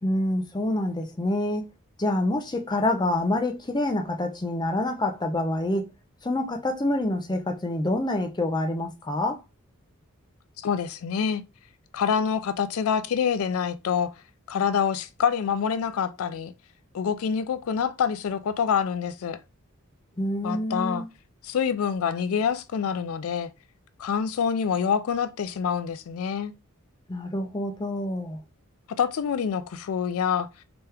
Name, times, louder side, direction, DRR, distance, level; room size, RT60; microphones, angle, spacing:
voice 1, 0.0-1.7 2.0-5.9 6.2-9.4 20.2-21.1 27.1-28.4, left 1 dB, 20° left, 0.5 m, -27 dB
voice 2, 10.6-11.4 11.9-14.1 14.5-16.5 16.9-19.4 20.4-21.0 21.4-23.5 24.0-26.5 29.0-30.5, left 7 dB, 80° left, 0.4 m, -26 dB
3.4 x 3.0 x 3.3 m
head